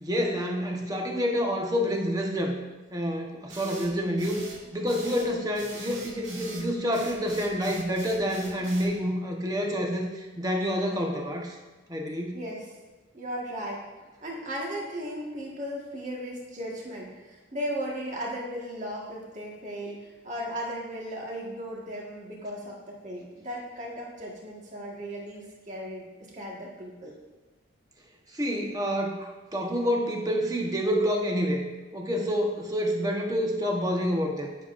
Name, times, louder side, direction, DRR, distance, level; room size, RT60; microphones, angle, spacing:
voice 1, 0.0-2.5 2.9-4.4 4.7-11.6 11.9-12.4 28.3-31.6 31.9-34.5, equal, 20° right, 0 dB, 1.2 m, -28 dB
sound 1, 3.5-8.9, right 3 dB, 75° right, 2.3 m, -43 dB
voice 2, 12.3-12.7 13.1-13.8 14.2-26.1 26.3-27.1, equal, 40° right, -3 dB, 1.7 m, -36 dB
21.0 x 7.3 x 2.6 m, 1.2 s
head